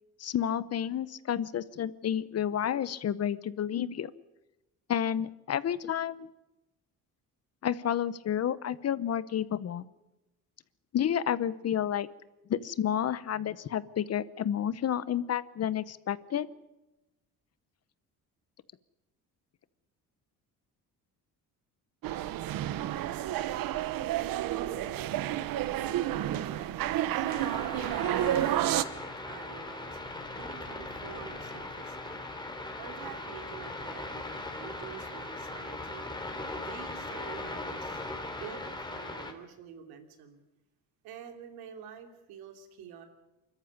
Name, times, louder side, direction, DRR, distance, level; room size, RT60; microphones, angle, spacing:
voice 1, 0.2-4.1 4.9-6.3 7.6-9.9 10.9-12.1 12.5-16.5, left 9 dB, 45° left, 17 dB, 0.9 m, -30 dB
sound 1, 22.0-28.8, right 13 dB, 65° right, 1.1 m, -30 dB
voice 2, 22.8-32.4 32.8-36.0 36.6-38.1 38.4-40.4 41.0-43.1, right 8 dB, 90° right, 5 dB, 3.1 m, -48 dB
sound 2, 27.3-39.3, left 2 dB, 10° left, 2.9 m, -39 dB
24.5 x 14.0 x 9.7 m, 1.0 s
cardioid pair, 110°, 36 cm